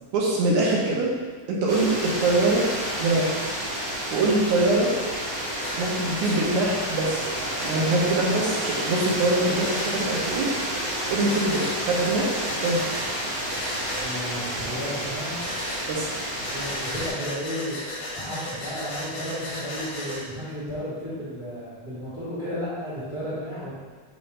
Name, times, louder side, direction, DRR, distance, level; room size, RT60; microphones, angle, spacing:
voice 1, 0.1-1.1 1.5-2.7 3.0-3.4 4.1-4.9 5.8-7.3 7.6-10.5 11.1-12.3 12.6-13.1 15.9-16.1, right 2 dB, 85° right, -3 dB, 2.5 m, -23 dB
sound 1, 1.7-17.1, right 1 dB, 55° right, 1.3 m, -30 dB
Breathing, 5.6-5.8 6.2-6.4 7.6-7.8 9.6-9.9 11.3-11.8 12.4-13.1 13.5-14.1 15.4-15.8 16.4-20.2, left 1 dB, 55° left, 1.7 m, -35 dB
voice 2, 13.9-15.6 16.4-17.8 18.2-23.8, equal, 25° left, -10 dB, 1.2 m, -33 dB
5.3 x 3.4 x 5.3 m, 1.4 s
omnidirectional pair, 3.4 m